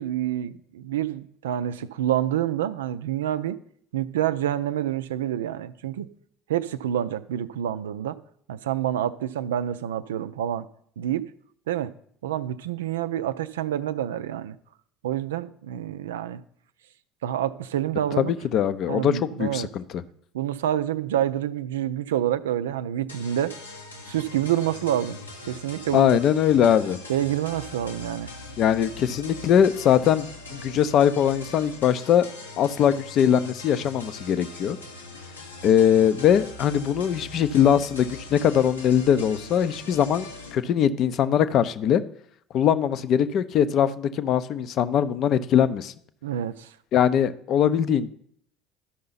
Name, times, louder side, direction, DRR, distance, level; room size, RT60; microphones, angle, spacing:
voice 1, 0.0-3.6 3.9-6.1 6.5-8.2 8.5-10.7 11.0-11.3 11.7-11.9 12.2-14.6 15.0-16.4 17.2-18.3 18.9-19.7 20.3-23.5 24.1-25.2 25.5-26.1 27.1-28.3 46.2-46.7, right 11 dB, 75° right, 0.4 m, -27 dB
voice 2, 18.2-20.0 25.9-27.0 28.6-32.3 32.6-34.8 35.6-42.0 42.5-45.9 46.9-48.1, left 9 dB, 50° left, 0.5 m, -21 dB
sound 1, 23.1-40.6, left 2 dB, 90° left, 1.1 m, -41 dB
13.0 x 5.6 x 4.0 m
figure-of-eight pair, 65°, 0 cm